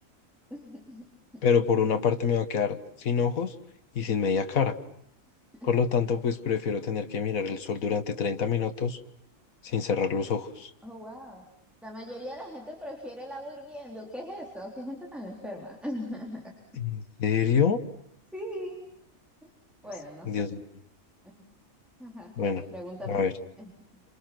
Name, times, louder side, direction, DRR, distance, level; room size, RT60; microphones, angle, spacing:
voice 1, 0.5-1.4 5.6-5.8 10.8-11.4 11.8-16.4 18.3-18.8 19.4-19.5 19.8-20.5 21.3-21.5 22.0-24.0, equal, ahead, 0 dB, 3.8 m, -40 dB
voice 2, 1.4-3.5 4.0-4.8 5.6-9.0 9.6-10.7 16.8-17.8 20.3-20.6 22.4-22.6 23.1-23.3, left 6 dB, 85° left, 8 dB, 1.7 m, -26 dB
28.5 x 27.5 x 6.0 m, 0.70 s
omnidirectional pair, 1.4 m